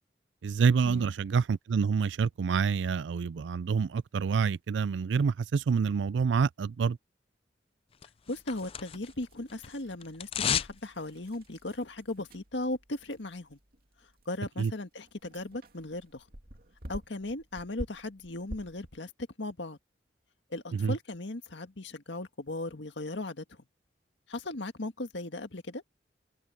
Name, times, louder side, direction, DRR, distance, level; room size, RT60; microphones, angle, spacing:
voice 1, 0.4-7.0 14.6-14.7 20.7-20.9, right 5 dB, 80° right, 0.4 m, -27 dB
sound 1, 8.0-9.2 9.5-10.8 11.1-11.2, left 8 dB, 30° left, 0.4 m, -32 dB
sound 2, 8.2-19.0, equal, 55° right, 2.6 m, -49 dB
voice 2, 8.3-13.6 14.3-16.2 16.9-19.1 19.4-19.8 20.5-23.4 24.3-25.8, left 2 dB, 80° left, 1.8 m, -37 dB
open air
head